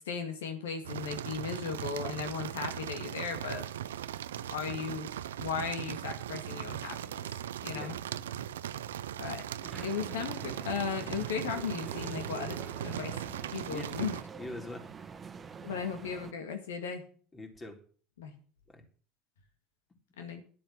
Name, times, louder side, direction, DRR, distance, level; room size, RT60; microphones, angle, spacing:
voice 1, 0.1-3.7 4.5-5.1 5.4-7.3 7.6-7.9 9.2-9.4 9.8-12.6 12.8-13.1 13.5-14.2 15.6-17.0 18.2-18.3 20.2-20.4, left 6 dB, 85° left, 6 dB, 2.0 m, -36 dB
sound 1, 0.8-14.2, right 11 dB, 90° right, 0.6 m, -39 dB
voice 2, 7.6-8.0 13.7-13.9 14.4-15.1 17.3-17.8 18.7-18.8, left 2 dB, 25° left, 3 dB, 3.9 m, -43 dB
sound 2, 9.6-16.3, right 5 dB, 30° right, 1.3 m, -46 dB
11.5 x 7.6 x 7.3 m, 0.42 s
hypercardioid pair, 80°, 0 cm